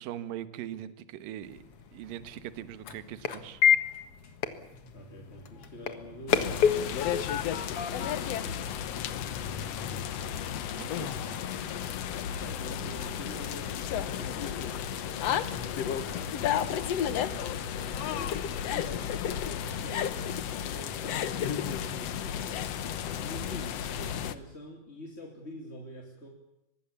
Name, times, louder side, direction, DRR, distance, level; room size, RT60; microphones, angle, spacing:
voice 1, 0.0-1.6 1.9-3.6 10.8-11.2, right 11 dB, 70° right, 12 dB, 2.8 m, -41 dB
sound 1, 1.4-9.3, left 8 dB, 50° left, 2.0 m, -31 dB
voice 2, 4.9-8.7 9.1-10.3 11.2-11.4 12.3-16.6 17.2-20.3 20.6-22.7 23.2-26.3, equal, 20° left, 0 dB, 2.9 m, -46 dB
sound 2, 6.3-24.3, left 9 dB, 70° left, 1.5 m, -33 dB
24.0 x 21.0 x 7.1 m, 0.88 s
omnidirectional pair, 4.4 m